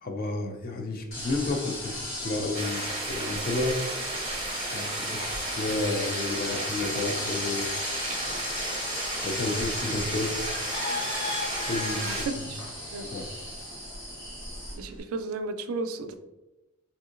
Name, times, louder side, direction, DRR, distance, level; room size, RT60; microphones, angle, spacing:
voice 1, 0.0-3.8 4.6-7.7 9.2-10.4 11.6-12.4 13.1-13.3, left 2 dB, 40° left, 4 dB, 0.4 m, -31 dB
sound 1, 1.1-15.0, left 2 dB, 60° left, 1.1 m, -36 dB
sound 2, 1.1-14.7, left 1 dB, 15° left, 0.9 m, -40 dB
sound 3, 2.5-12.3, right 3 dB, 25° right, 0.5 m, -34 dB
voice 2, 12.0-12.6 12.9-13.1 14.7-16.2, right 3 dB, 75° right, 7 dB, 0.3 m, -34 dB
3.5 x 2.7 x 2.4 m, 1.1 s
head